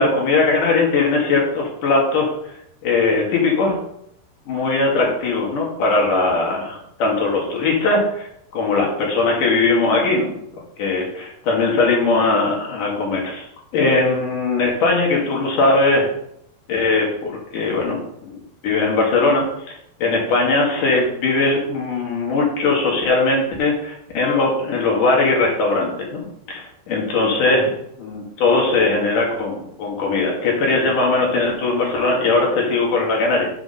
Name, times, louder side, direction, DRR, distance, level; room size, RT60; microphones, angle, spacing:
voice 1, 0.0-2.3 2.8-3.8 4.5-8.3 8.5-10.3 10.8-13.5 13.7-16.1 16.7-18.3 18.6-19.7 20.0-27.7 28.0-33.5, left 3 dB, 60° left, -1 dB, 3.4 m, -19 dB
7.1 x 6.2 x 5.6 m, 0.74 s
omnidirectional pair, 4.3 m